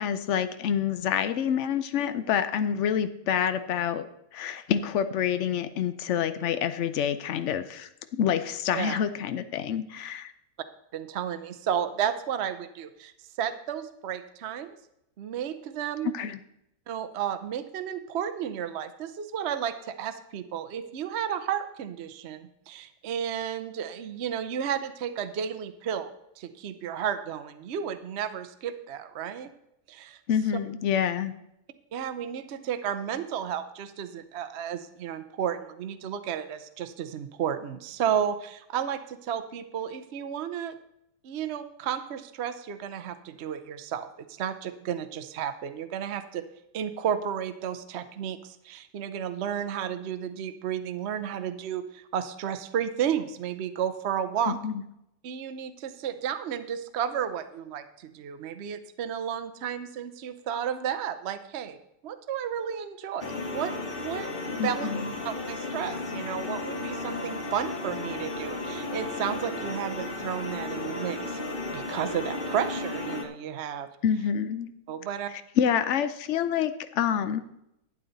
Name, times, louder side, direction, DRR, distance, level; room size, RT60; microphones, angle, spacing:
voice 1, 0.0-4.1 4.3-7.9 8.2-10.3 16.0-16.4 30.3-31.3 54.5-54.8 64.6-65.1 74.0-74.7 75.3-77.4, left 8 dB, 65° left, 11 dB, 0.7 m, -27 dB
voice 2, 10.9-13.1 13.4-14.8 15.2-16.1 16.9-29.5 29.9-30.2 31.9-40.7 41.2-44.1 44.4-46.4 46.7-54.6 55.2-61.8 62.0-64.9 65.2-71.4 71.7-73.9 74.9-75.3, right 9 dB, 60° right, 10 dB, 0.7 m, -32 dB
sound 1, 63.2-73.2, left 2 dB, 40° left, 1.0 m, -34 dB
12.0 x 8.9 x 4.0 m, 0.81 s
omnidirectional pair, 1.9 m